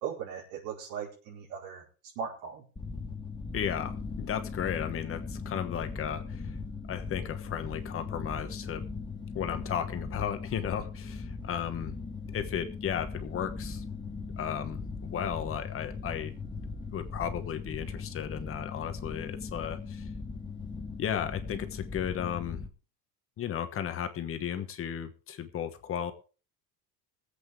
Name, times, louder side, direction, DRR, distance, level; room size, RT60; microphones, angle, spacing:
voice 1, 0.0-1.9 2.1-2.6, right 7 dB, 80° right, -3 dB, 4.8 m, -38 dB
sound 1, 2.8-22.7, left 4 dB, 10° left, 1.1 m, -39 dB
voice 2, 3.5-6.6 6.9-8.8 9.3-12.0 12.3-13.8 14.4-16.3 16.9-20.1 21.0-22.6 23.4-26.1, left 9 dB, 30° left, 9 dB, 1.2 m, -34 dB
22.0 x 8.2 x 3.6 m, 0.36 s
cardioid pair, 150°, 43 cm